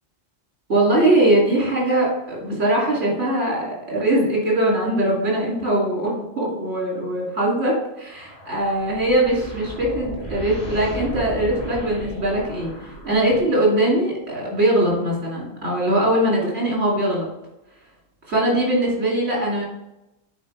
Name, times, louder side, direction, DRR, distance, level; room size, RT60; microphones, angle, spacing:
voice 1, 0.7-17.3 18.3-19.6, right 1 dB, 65° right, -4 dB, 3.0 m, -21 dB
sound 1, 8.2-13.6, equal, 25° right, 2.8 m, -35 dB
8.9 x 4.5 x 3.3 m, 0.92 s
omnidirectional pair, 1.2 m